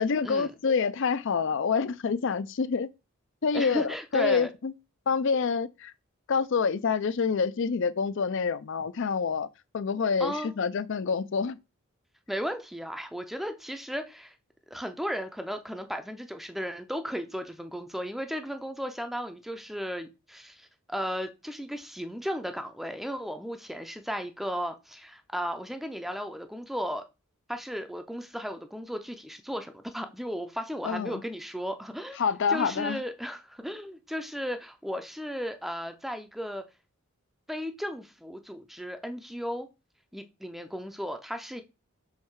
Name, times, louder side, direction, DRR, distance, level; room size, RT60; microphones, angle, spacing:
voice 1, 0.0-2.9 3.4-4.7 5.1-5.9 6.3-9.5 9.7-11.6 30.8-31.2 32.2-33.0, left 5 dB, 60° left, 0.5 m, -27 dB
voice 2, 3.5-4.5 10.2-10.5 12.3-14.4 14.7-27.1 27.5-32.2 32.5-36.6 37.5-39.7 40.1-41.6, equal, ahead, 0.5 m, -35 dB
6.5 x 3.2 x 4.6 m
head